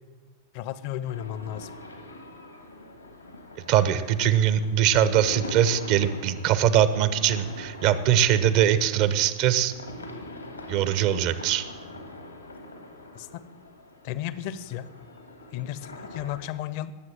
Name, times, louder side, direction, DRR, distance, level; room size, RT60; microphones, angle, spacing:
voice 1, 0.5-1.7 13.1-13.4 14.0-14.9 15.5-16.9, left 11 dB, 45° left, 16 dB, 0.8 m, -34 dB
sound 1, 1.1-16.4, left 2 dB, 85° left, 2.2 m, -43 dB
voice 2, 3.7-9.7 10.7-11.6, right 10 dB, 45° right, 14 dB, 0.9 m, -22 dB
20.0 x 7.9 x 7.5 m, 1.4 s
figure-of-eight pair, 90°, 0 cm